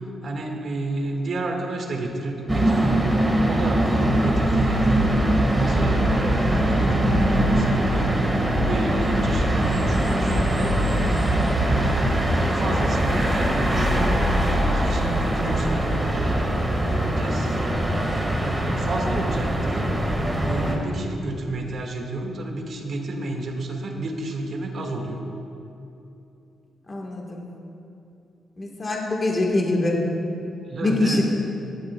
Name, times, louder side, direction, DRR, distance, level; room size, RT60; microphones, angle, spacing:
voice 1, 0.0-3.1 3.4-5.1 5.5-10.8 11.6-17.6 18.4-25.2 30.6-31.2, right 2 dB, 55° right, 1 dB, 1.9 m, -31 dB
sound 1, 2.5-20.8, right 1 dB, 15° right, 1.8 m, -22 dB
voice 2, 26.9-27.4 28.6-30.0 30.8-31.2, left 2 dB, 30° left, -1 dB, 1.6 m, -23 dB
19.5 x 11.5 x 2.4 m, 2.8 s
cardioid pair, 100°, 0 cm